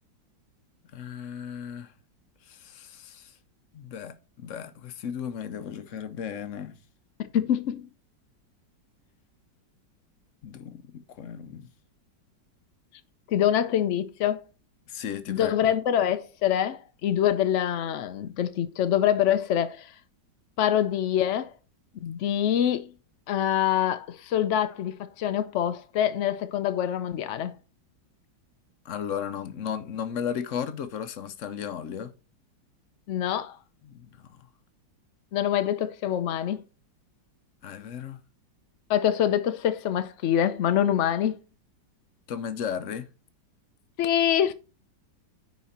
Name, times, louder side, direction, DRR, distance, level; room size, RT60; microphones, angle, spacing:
voice 1, 0.9-1.9 2.5-3.4 3.7-6.8 10.4-11.7 14.9-15.7 22.0-22.1 28.8-32.1 33.8-34.4 37.6-38.2 42.3-43.1, left 8 dB, 60° left, 0.8 m, -35 dB
voice 2, 7.2-7.9 13.3-14.4 15.3-19.9 20.6-21.5 22.0-22.9 23.3-27.6 33.1-33.6 35.3-36.6 38.9-41.4 44.0-44.5, left 10 dB, 85° left, 0.6 m, -25 dB
9.6 x 4.2 x 4.2 m
omnidirectional pair, 2.0 m